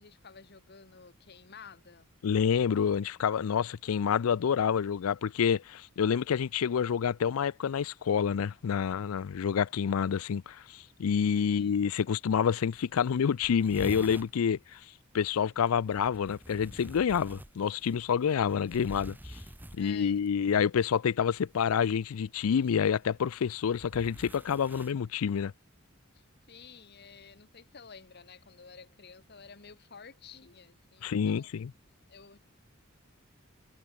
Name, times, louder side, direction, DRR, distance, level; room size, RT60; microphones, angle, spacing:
voice 1, 0.0-2.1 11.5-11.8 19.8-20.2 26.1-31.5 32.1-32.4, left 6 dB, 50° left, 1.4 m, -52 dB
voice 2, 2.2-14.8 15.1-19.4 19.8-25.5 31.0-31.7, left 7 dB, 90° left, 0.4 m, -28 dB
sound 1, 12.0-12.1 12.4-12.5 12.7-12.8 13.0-14.4 15.9-20.3 21.5-21.8 22.7-24.9, right 1 dB, 10° right, 1.2 m, -46 dB
head